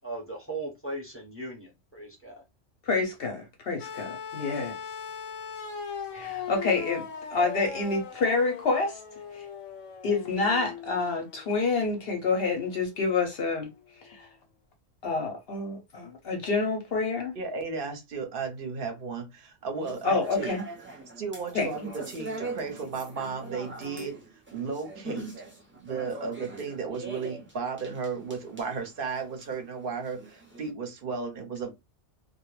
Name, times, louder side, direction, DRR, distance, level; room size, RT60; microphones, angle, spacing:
voice 1, 0.0-2.4, right 2 dB, 15° left, 0.7 m, -38 dB
voice 2, 2.8-4.8 6.1-9.0 9.3-9.4 10.0-13.7 14.0-14.3 15.0-17.3 20.0-20.6 21.5-21.7, left 3 dB, 60° left, 0.7 m, -28 dB
sound 1, 3.8-11.9 13.1-13.2, left 7 dB, 85° left, 1.0 m, -39 dB
voice 3, 17.4-20.6 21.2-24.2 24.5-25.3 25.7-31.7, right 5 dB, 55° right, 0.7 m, -34 dB
sound 2, 19.8-30.7, right 3 dB, 20° right, 0.3 m, -42 dB
2.2 x 2.1 x 3.0 m
omnidirectional pair, 1.3 m